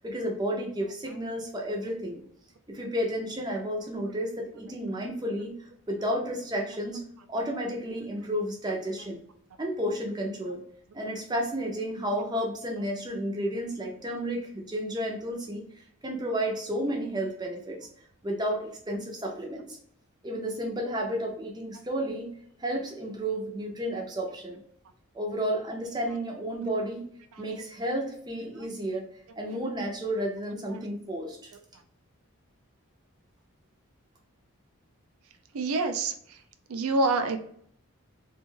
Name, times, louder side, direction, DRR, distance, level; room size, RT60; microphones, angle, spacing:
voice 1, 0.0-2.2 2.7-5.5 5.9-9.2 9.6-10.6 10.9-15.6 16.0-17.8 18.2-19.8 20.2-22.3 22.6-24.6 25.1-27.1 27.4-29.1 29.4-31.5, equal, 20° right, 0 dB, 0.5 m, -32 dB
voice 2, 35.5-36.4 36.7-37.4, right 3 dB, 80° right, 7 dB, 0.4 m, -27 dB
2.5 x 2.3 x 3.1 m, 0.65 s
head